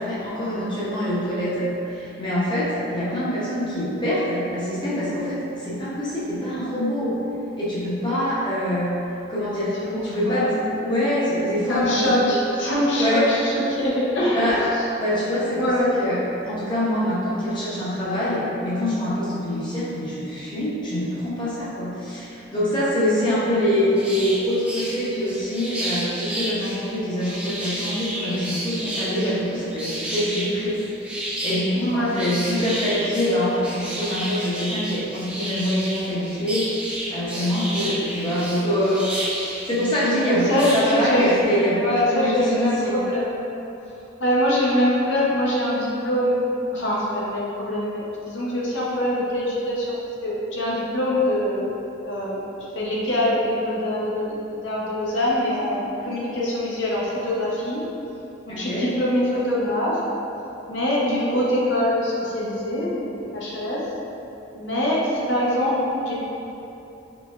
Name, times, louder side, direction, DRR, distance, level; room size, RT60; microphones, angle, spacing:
voice 1, 0.0-7.1 7.6-8.9 9.3-9.7 10.0-12.4 13.0-13.3 14.3-14.6 14.9-30.8 31.4-36.7 37.1-39.1 39.7-41.8 42.1-43.0 58.5-58.9, equal, 25° left, -9 dB, 0.7 m, -24 dB
voice 2, 9.8-10.5 11.7-14.7 15.6-15.9 31.8-32.2 40.3-41.5 41.8-43.3 44.2-46.4 46.7-51.7 52.0-52.4 52.7-57.9 58.5-60.0 60.7-63.9 64.5-66.1, left 1 dB, 70° left, -5 dB, 0.7 m, -23 dB
sound 1, 24.0-41.4, right 1 dB, 5° right, 0.3 m, -32 dB
3.9 x 3.1 x 2.4 m, 2.9 s
head